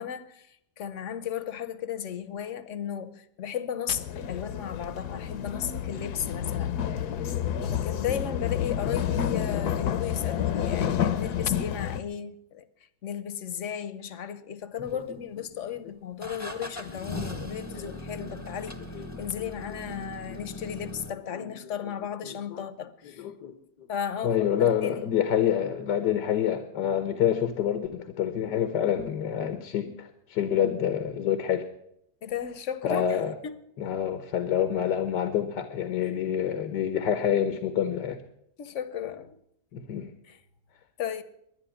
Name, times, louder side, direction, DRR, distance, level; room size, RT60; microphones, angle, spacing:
voice 1, 0.0-6.8 7.7-12.6 13.0-18.7 19.2-23.2 23.9-25.0 32.2-33.6 38.6-39.4 40.3-40.4 41.0-41.2, left 9 dB, 55° left, 1.1 m, -35 dB
sound 1, 3.9-12.0, left 9 dB, 70° left, 1.3 m, -29 dB
sound 2, 14.8-15.5 16.2-21.1, left 2 dB, 10° left, 0.9 m, -39 dB
voice 2, 16.9-17.2 17.7-18.4 18.6-19.2 20.3-20.4 21.3-21.7 22.2-22.7 23.2-23.9 24.2-31.7 32.8-33.3 33.8-38.2 39.7-40.1, left 9 dB, 85° left, 1.6 m, -28 dB
11.5 x 10.5 x 10.0 m
omnidirectional pair, 1.8 m